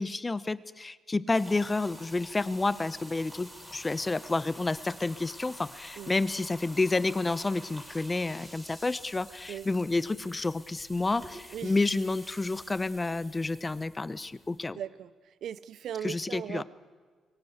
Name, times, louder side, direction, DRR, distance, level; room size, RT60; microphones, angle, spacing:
voice 1, 0.0-14.8 16.0-16.6, left 3 dB, 20° left, 16 dB, 0.8 m, -30 dB
sound 1, 1.3-14.6, equal, 10° right, 5.5 m, -49 dB
voice 2, 14.7-15.1 15.4-16.6, right 9 dB, 70° right, 18 dB, 0.6 m, -38 dB
22.5 x 18.5 x 8.1 m, 1.5 s
cardioid pair, 90°, 0 cm